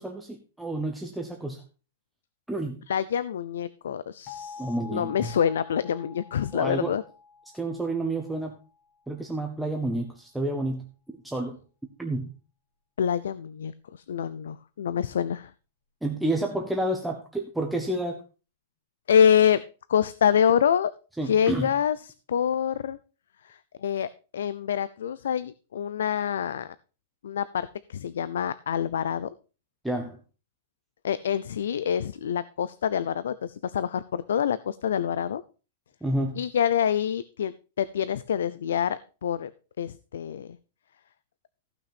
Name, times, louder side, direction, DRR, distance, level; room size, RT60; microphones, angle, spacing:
voice 1, 0.0-1.6 2.5-2.8 4.6-5.3 6.5-6.9 7.5-8.5 9.1-10.9 11.2-11.6 12.0-12.3 16.0-18.2 21.2-21.7 29.8-30.2 36.0-36.4, right 1 dB, ahead, 2 dB, 0.8 m, -30 dB
voice 2, 2.9-7.0 13.0-15.5 19.1-19.6 19.9-20.9 21.2-22.0 22.3-23.0 23.4-26.7 27.2-29.3 31.0-35.4 36.4-39.5 39.8-40.6, left 8 dB, 80° left, 16 dB, 0.5 m, -26 dB
sound 1, 4.3-9.0, left 5 dB, 20° left, 2.2 m, -47 dB
15.0 x 6.0 x 4.3 m, 0.34 s
supercardioid pair, 175°, 0 cm